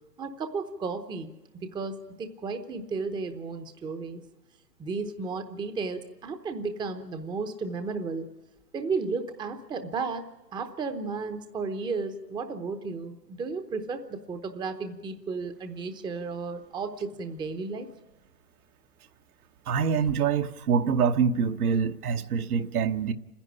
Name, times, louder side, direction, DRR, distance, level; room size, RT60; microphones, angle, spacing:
voice 1, 0.2-4.2 4.8-8.3 8.7-10.2 10.5-17.9, right 4 dB, 10° right, 8 dB, 0.8 m, -33 dB
voice 2, 19.7-23.1, right 6 dB, 65° right, 7 dB, 1.2 m, -25 dB
28.5 x 10.5 x 9.9 m, 1.1 s
figure-of-eight pair, 115°, 49 cm